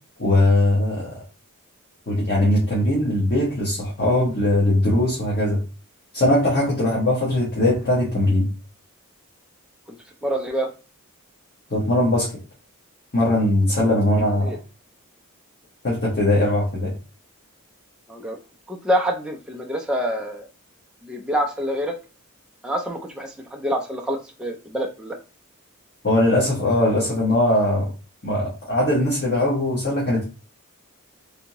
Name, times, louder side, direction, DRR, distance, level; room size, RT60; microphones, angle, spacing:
voice 1, 0.2-1.1 2.1-5.6 6.1-8.5 11.7-12.3 13.1-14.5 15.8-16.9 26.0-27.9 28.2-30.2, left 1 dB, 45° left, -6 dB, 1.2 m, -20 dB
voice 2, 10.2-10.7 14.4-14.6 18.1-18.4 18.7-20.4 21.0-22.0 22.6-25.2, equal, 5° right, 0 dB, 0.4 m, -26 dB
3.4 x 2.7 x 2.9 m, 0.33 s
head